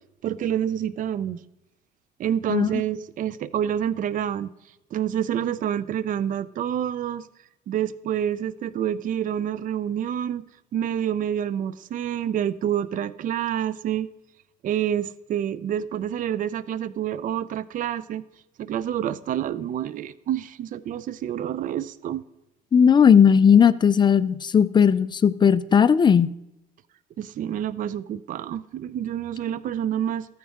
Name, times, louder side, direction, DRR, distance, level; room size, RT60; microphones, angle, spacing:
voice 1, 0.2-1.4 2.2-4.5 4.9-7.2 7.7-10.4 10.7-14.1 14.6-18.2 18.6-22.2 27.2-30.3, right 10 dB, 50° right, 16 dB, 0.5 m, -28 dB
voice 2, 22.7-26.3, left 7 dB, 25° left, 14 dB, 0.5 m, -17 dB
14.0 x 9.4 x 3.6 m, 0.88 s
cardioid pair, 110°, 17 cm